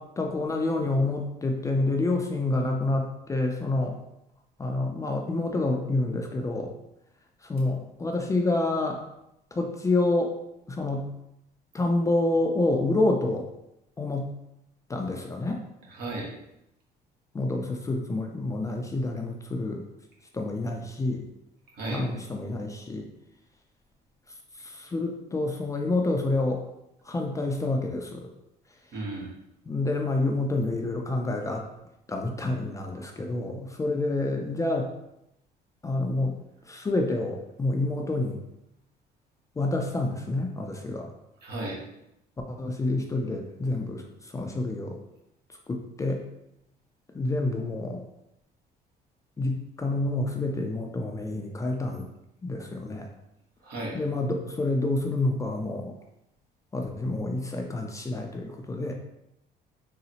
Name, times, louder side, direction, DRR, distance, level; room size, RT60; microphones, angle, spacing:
voice 1, 0.0-4.0 4.6-6.7 7.4-9.0 9.5-10.3 10.7-11.1 11.7-13.5 14.0-14.3 14.9-15.6 17.3-19.8 20.3-21.3 21.9-23.1 24.5-26.6 27.0-28.3 29.7-31.7 32.1-34.9 35.8-36.3 36.7-38.4 39.6-41.1 42.5-45.0 45.7-46.2 47.1-48.0 49.4-52.1 52.4-53.1 53.9-55.9 56.7-58.9, left 2 dB, 20° left, 2 dB, 0.3 m, -28 dB
voice 2, 15.9-16.3 21.7-22.0 28.9-29.3 41.4-41.8 53.6-54.0, right 2 dB, 65° right, -3 dB, 1.1 m, -34 dB
3.8 x 2.0 x 2.7 m, 0.84 s
cardioid pair, 110°, 17 cm